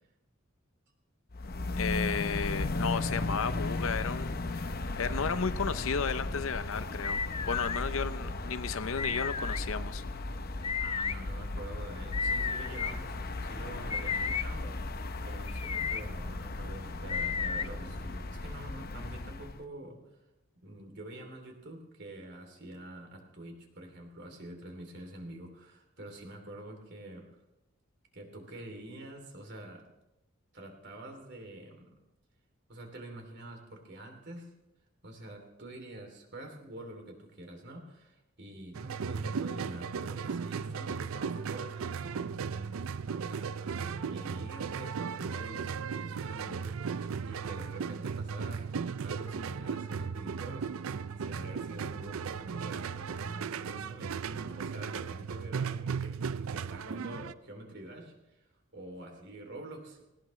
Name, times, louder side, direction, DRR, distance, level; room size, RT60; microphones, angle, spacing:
sound 1, 1.3-19.6, left 2 dB, 45° left, 0.8 m, -36 dB
voice 1, 1.7-10.0, left 5 dB, 75° left, 13 dB, 0.7 m, -34 dB
sound 2, 7.0-7.8 9.0-9.6 10.6-11.1 12.1-12.9 13.9-14.5 15.5-16.0 17.1-17.7, left 6 dB, 30° left, 0.4 m, -33 dB
voice 2, 10.8-20.0 20.6-27.3 28.1-29.8 30.5-32.0 32.7-34.5 35.0-42.8 43.1-50.7 51.2-58.4 58.7-60.0, right 1 dB, 55° right, 3 dB, 3.1 m, -46 dB
sound 3, 38.7-57.3, right 6 dB, 85° right, 0.5 m, -36 dB
19.0 x 18.0 x 3.3 m, 0.94 s
head